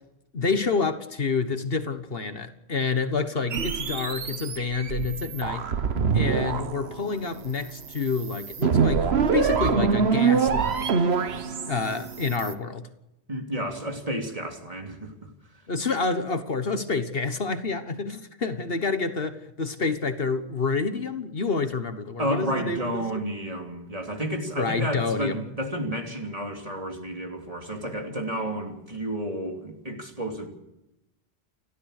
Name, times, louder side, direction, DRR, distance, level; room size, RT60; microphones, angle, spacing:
voice 1, 0.3-5.7 6.1-9.1 9.3-10.9 11.7-12.8 15.7-23.0 24.5-25.4, left 4 dB, 60° left, 9 dB, 1.6 m, -28 dB
sound 1, 3.5-12.5, right 6 dB, 70° right, 1.3 m, -25 dB
voice 2, 13.3-15.3 22.2-30.5, equal, 35° right, 3 dB, 3.2 m, -31 dB
29.5 x 13.5 x 6.6 m, 0.88 s
omnidirectional pair, 1.1 m